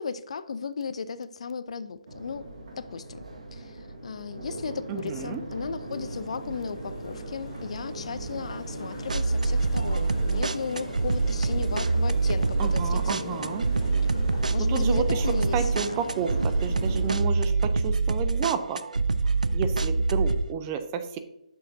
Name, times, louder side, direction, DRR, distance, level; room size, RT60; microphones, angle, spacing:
voice 1, 0.0-2.5 2.8-3.2 3.5-13.6 14.0-14.2 14.5-15.9, left 5 dB, 55° left, 14 dB, 0.4 m, -35 dB
Crowd, 2.1-17.2, right 2 dB, 65° right, 1.6 m, -38 dB
voice 2, 4.9-5.4 12.6-13.7 14.6-15.3 15.5-18.9 19.5-21.2, right 7 dB, 20° right, 9 dB, 0.5 m, -31 dB
sound 1, 5.9-17.0, left 2 dB, 40° left, 2.0 m, -45 dB
sound 2, 9.1-20.4, right 3 dB, 85° right, 0.4 m, -25 dB
7.5 x 6.3 x 2.6 m, 0.83 s
figure-of-eight pair, 150°, 4 cm